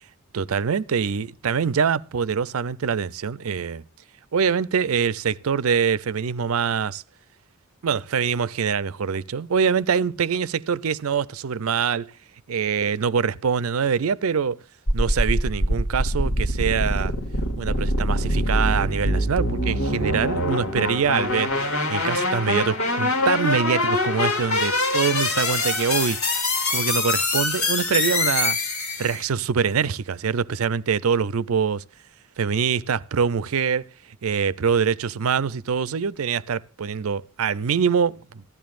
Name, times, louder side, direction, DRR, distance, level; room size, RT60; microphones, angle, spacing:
voice 1, 0.3-3.8 4.3-7.0 7.8-12.1 12.5-14.6 14.9-17.1 17.6-21.5 21.9-26.2 26.7-28.6 29.0-31.8 32.4-33.9 34.2-38.4, right 6 dB, 85° right, 0.5 m, -24 dB
sound 1, 14.9-29.2, left 1 dB, 85° left, 2.1 m, -24 dB
16.5 x 12.5 x 2.5 m
head